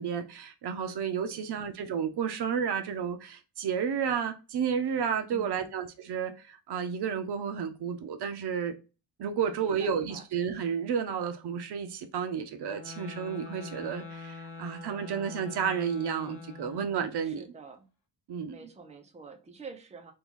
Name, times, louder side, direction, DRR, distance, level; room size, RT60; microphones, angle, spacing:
voice 1, 0.0-8.8 9.2-17.4 18.3-18.6, right 7 dB, 65° right, 0.7 m, -31 dB
voice 2, 1.3-1.7 5.3-5.7 9.5-10.3 17.2-17.9 18.5-20.1, right 4 dB, 15° right, 0.6 m, -48 dB
sound 1, 12.6-17.1, left 4 dB, 30° left, 0.8 m, -44 dB
3.1 x 2.5 x 3.6 m
cardioid pair, 130°, 43 cm